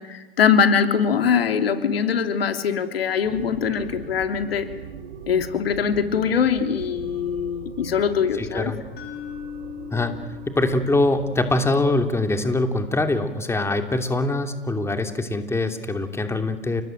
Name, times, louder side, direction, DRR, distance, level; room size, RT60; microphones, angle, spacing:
voice 1, 0.0-4.7 5.3-8.7, left 7 dB, 85° left, 7 dB, 3.0 m, -22 dB
sound 1, 3.2-13.1, right 7 dB, 75° right, 4.0 m, -41 dB
voice 2, 8.4-8.8 9.9-10.1 10.4-16.8, left 2 dB, 10° left, 6 dB, 2.9 m, -23 dB
sound 2, 9.0-13.0, left 8 dB, 35° left, 6.5 m, -40 dB
30.0 x 19.0 x 9.2 m, 1.2 s
hypercardioid pair, 110°, 29 cm